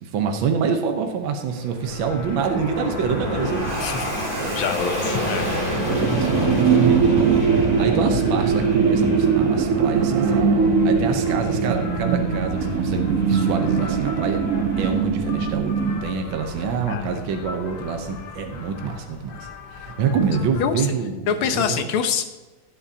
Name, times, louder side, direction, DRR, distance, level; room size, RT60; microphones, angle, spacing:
voice 1, 0.0-3.6 4.0-4.6 5.9-10.4 10.8-14.4 14.8-21.8, right 6 dB, 70° right, 4 dB, 1.7 m, -26 dB
Fixed-wing aircraft airplane, 1.2-17.9, equal, 20° right, 3.8 m, -28 dB
sound 1, 1.8-20.6, left 4 dB, 55° left, 1.4 m, -41 dB
voice 2, 4.5-5.5 16.9-17.1 20.6-20.9 21.3-22.2, left 7 dB, 85° left, 8 dB, 1.8 m, -25 dB
sound 2, 5.9-16.0, right 6 dB, 90° right, 0.7 m, -21 dB
16.0 x 8.6 x 2.8 m, 1.2 s
omnidirectional pair, 2.3 m